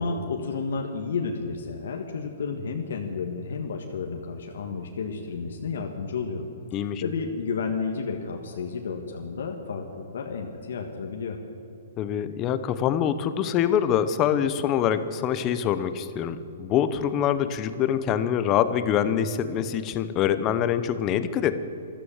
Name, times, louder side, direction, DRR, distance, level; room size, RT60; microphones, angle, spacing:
voice 1, 0.0-6.4 6.7-11.4, left 5 dB, 75° left, 3 dB, 1.5 m, -31 dB
voice 2, 6.7-7.0 12.0-21.5, left 9 dB, 25° left, 12 dB, 0.8 m, -25 dB
14.0 x 13.0 x 7.2 m, 2.9 s
hypercardioid pair, 160°, 0 cm